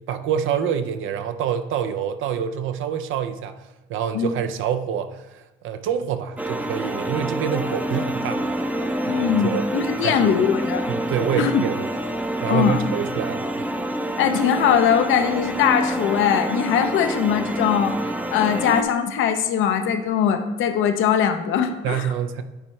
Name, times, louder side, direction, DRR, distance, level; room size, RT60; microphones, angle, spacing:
voice 1, 0.1-3.6 3.9-8.4 9.1-9.6 10.0-10.4 10.9-11.9 12.4-13.7 21.8-22.4, right 8 dB, 80° right, 10 dB, 0.5 m, -26 dB
sound 1, 6.4-18.8, right 1 dB, 5° right, 0.5 m, -27 dB
voice 2, 9.1-10.8 11.4-11.6 12.5-12.8 14.2-18.0 18.3-22.1, left 8 dB, 85° left, 8 dB, 0.6 m, -21 dB
9.9 x 4.4 x 3.1 m, 1.1 s
cardioid pair, 90°, 20 cm